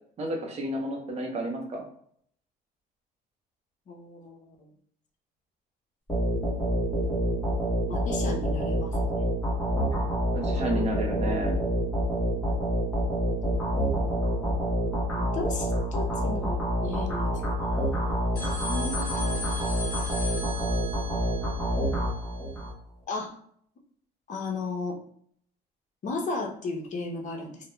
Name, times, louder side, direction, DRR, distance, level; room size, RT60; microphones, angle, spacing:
voice 1, 0.2-1.9 10.3-11.6, right 1 dB, 40° right, 2 dB, 0.7 m, -31 dB
voice 2, 3.9-4.7 7.9-9.0 12.1-12.5 15.1-17.5 18.5-19.5 23.1-23.3 24.3-25.0 26.0-27.6, left 3 dB, 45° left, 2 dB, 0.7 m, -35 dB
sound 1, 6.1-22.7, equal, 10° left, 0.8 m, -27 dB
sound 2, 18.4-22.7, left 2 dB, 65° left, 1.0 m, -38 dB
2.3 x 2.1 x 3.0 m, 0.64 s
cardioid pair, 110°, 17 cm